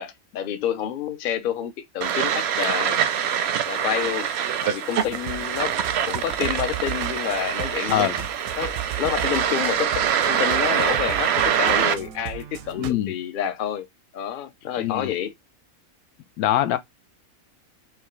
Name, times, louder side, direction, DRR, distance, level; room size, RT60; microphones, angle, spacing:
voice 1, 0.0-3.0 3.7-4.3 4.6-5.8 6.1-8.1 8.6-13.9 14.1-15.3, left 10 dB, 55° left, 0.6 m, -29 dB
sound 1, 2.0-11.9, right 8 dB, 65° right, 0.7 m, -24 dB
sound 2, 5.0-12.9, right 11 dB, 80° right, 1.0 m, -36 dB
voice 2, 12.8-13.1 14.8-15.1 16.4-16.8, left 12 dB, 85° left, 1.1 m, -23 dB
4.7 x 2.2 x 3.0 m
omnidirectional pair, 1.5 m